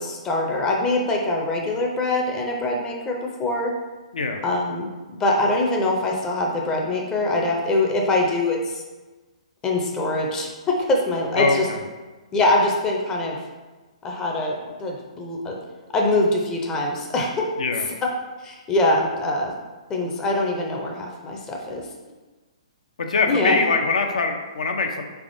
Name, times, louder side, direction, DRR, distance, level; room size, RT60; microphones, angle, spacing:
voice 1, 0.0-3.7 4.4-4.9 5.2-8.8 9.6-11.7 12.3-13.4 14.0-15.6 15.9-17.8 18.4-19.5 19.9-21.8 23.3-23.6, left 2 dB, 15° left, 0 dB, 0.4 m, -23 dB
voice 2, 11.4-11.8 17.6-17.9 23.0-25.0, left 4 dB, 80° left, 5 dB, 0.5 m, -23 dB
3.6 x 3.4 x 2.6 m, 1.2 s
hypercardioid pair, 150°, 4 cm